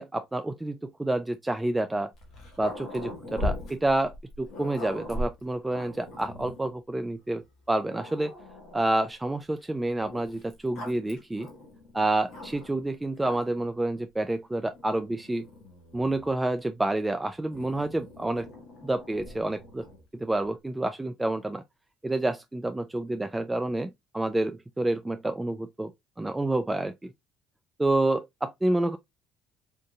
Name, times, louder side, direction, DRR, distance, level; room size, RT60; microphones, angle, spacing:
voice 1, 0.0-2.1 2.6-8.3 8.7-11.5 11.9-15.5 15.9-18.5 18.8-19.9 20.1-21.6 22.0-25.9 26.2-27.1 27.8-29.0, right 2 dB, 15° right, 0.3 m, -28 dB
Growling, 2.1-6.7 7.4-7.5 7.9-8.9 10.0-12.8 13.2-13.7 14.6-16.4 17.5-20.0, left 1 dB, 65° left, 1.4 m, -40 dB
3.7 x 2.6 x 2.3 m
hypercardioid pair, 65°, 0 cm